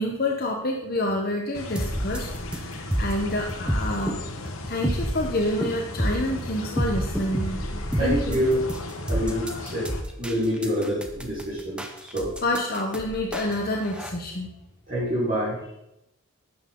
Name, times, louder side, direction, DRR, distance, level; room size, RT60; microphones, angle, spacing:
voice 1, 0.0-4.2 4.6-7.6 8.0-8.4 12.4-14.5, left 1 dB, 45° left, 0 dB, 1.1 m, -28 dB
sound 1, 1.5-10.0, left 2 dB, 90° left, 1.4 m, -36 dB
sound 2, 1.8-14.1, equal, 5° right, 0.8 m, -30 dB
voice 2, 8.0-8.6 9.1-9.9 10.2-12.3 14.9-15.6, equal, 40° right, -10 dB, 4.4 m, -26 dB
12.0 x 9.0 x 3.8 m, 0.85 s
head